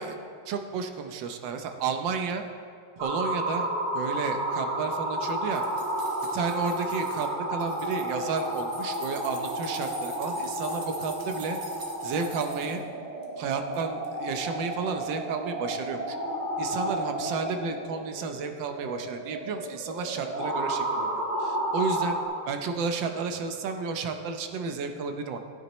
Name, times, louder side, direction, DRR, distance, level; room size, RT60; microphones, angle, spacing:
voice 1, 0.5-2.4 3.0-3.7 3.9-5.6 6.3-11.6 12.0-12.8 13.4-16.2 16.6-21.1 21.4-22.2 22.5-25.4, right 5 dB, 65° right, 6 dB, 1.4 m, -32 dB
sound 1, 3.0-22.2, right 1 dB, 25° right, 1.4 m, -32 dB
sound 2, 5.2-7.3 7.6-12.8 13.2-13.8 14.0-14.1, right 3 dB, 90° right, 2.4 m, -45 dB
15.0 x 9.6 x 3.1 m, 2.2 s
omnidirectional pair, 2.4 m